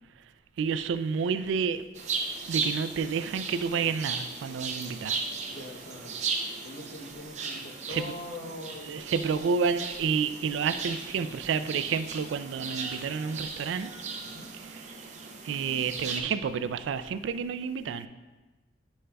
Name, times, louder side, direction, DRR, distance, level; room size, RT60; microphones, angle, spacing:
voice 1, 0.6-1.8 2.5-5.2 7.9-8.0 8.9-13.9 15.4-18.1, right 6 dB, 85° right, 0.3 m, -29 dB
sound 1, 2.0-16.2, right 4 dB, 40° right, 0.5 m, -36 dB
voice 2, 5.5-6.2 6.6-9.5 10.7-10.9 11.2-11.4 14.2-14.5, left 1 dB, 55° left, 0.9 m, -43 dB
10.0 x 5.4 x 2.2 m
head